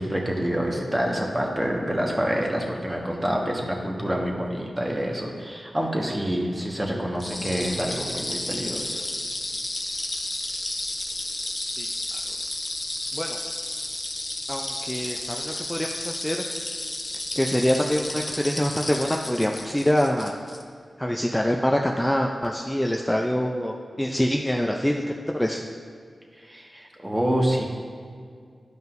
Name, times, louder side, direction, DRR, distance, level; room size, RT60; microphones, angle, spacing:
voice 1, 0.0-9.0 26.4-27.6, equal, 20° right, -1 dB, 1.4 m, -27 dB
sound 1, 7.2-20.6, left 2 dB, 40° left, 0.8 m, -32 dB
voice 2, 14.5-16.4 17.4-20.3 21.0-25.7, equal, 10° left, 1 dB, 0.5 m, -25 dB
11.0 x 5.3 x 2.6 m, 2.1 s
cardioid pair, 50°, 0 cm